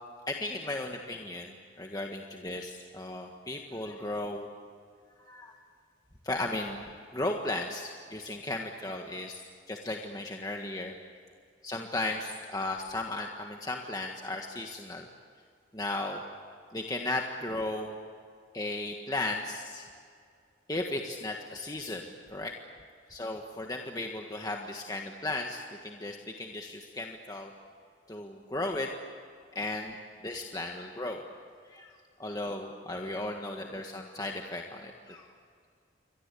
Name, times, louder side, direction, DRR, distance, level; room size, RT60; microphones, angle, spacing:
voice 1, 0.3-4.5 5.2-5.6 6.2-10.9 11.6-15.1 15.7-16.2 16.7-18.0 18.5-19.9 20.7-22.5 23.1-27.5 28.1-28.9 29.6-31.2 31.7-31.9 32.2-35.3, left 2 dB, 20° left, 2 dB, 1.6 m, -35 dB
29.0 x 23.5 x 8.5 m, 2.2 s
head